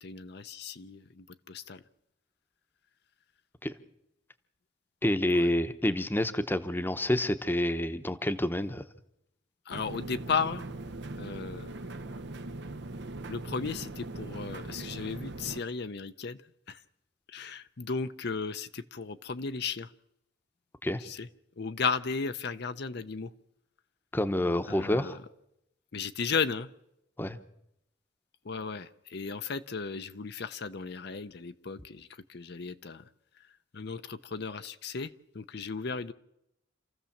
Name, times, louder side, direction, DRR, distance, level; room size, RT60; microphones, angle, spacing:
voice 1, 0.0-1.8 5.3-5.5 9.7-10.6 11.2-11.8 13.3-16.4 16.7-16.8 17.3-19.9 21.0-21.3 21.6-23.3 24.7-25.2 25.9-26.7 28.4-33.0 33.7-36.1, left 5 dB, 60° left, 10 dB, 0.7 m, -35 dB
voice 2, 5.0-8.8 20.8-21.0 24.1-25.2 27.2-27.4, left 1 dB, 10° left, 10 dB, 0.9 m, -28 dB
sound 1, 9.7-15.6, right 2 dB, 60° right, 0.8 m, -40 dB
27.0 x 14.5 x 7.2 m, 0.84 s
head